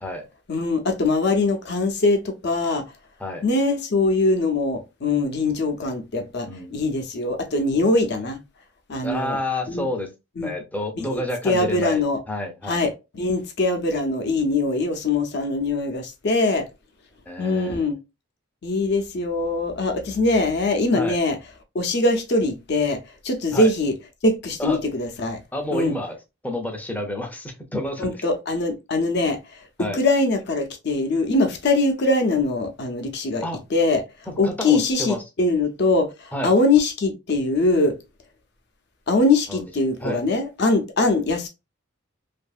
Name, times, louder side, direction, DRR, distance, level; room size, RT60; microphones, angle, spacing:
voice 1, 0.5-2.8 3.4-8.4 8.9-9.4 9.7-9.9 10.4-10.5 10.9-12.2 12.7-16.6 17.4-18.0 18.6-21.4 21.7-23.0 23.2-23.9 24.2-25.4 25.7-25.9 28.0-29.4 29.8-33.5 33.7-34.0 34.4-36.1 36.4-38.0 39.1-41.5, left 2 dB, 55° left, 0.6 m, -22 dB
voice 2, 6.5-6.9 9.0-10.1 10.4-12.0 12.3-12.8 17.3-17.9 20.9-21.2 23.5-23.7 24.6-24.8 25.5-26.2 26.4-28.1 29.8-30.0 33.4-33.6 34.3-35.2 36.3-36.5 39.5-39.7 40.0-40.2, left 1 dB, 10° left, 0.5 m, -29 dB
2.7 x 2.5 x 2.3 m
head